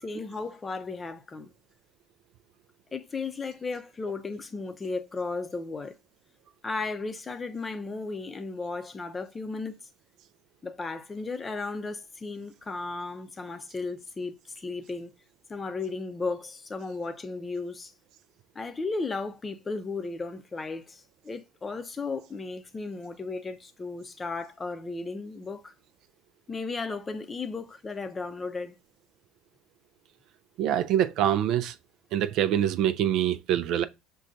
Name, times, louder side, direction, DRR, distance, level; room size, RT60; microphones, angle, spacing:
voice 1, 0.0-1.5 2.9-5.9 6.6-9.8 10.6-15.1 15.5-17.9 18.5-25.7 26.5-28.7, left 3 dB, 25° left, 0.5 m, -35 dB
voice 2, 30.6-31.7 32.1-33.9, right 11 dB, 60° right, 0.3 m, -25 dB
6.2 x 2.3 x 2.5 m
hypercardioid pair, 85°, 0 cm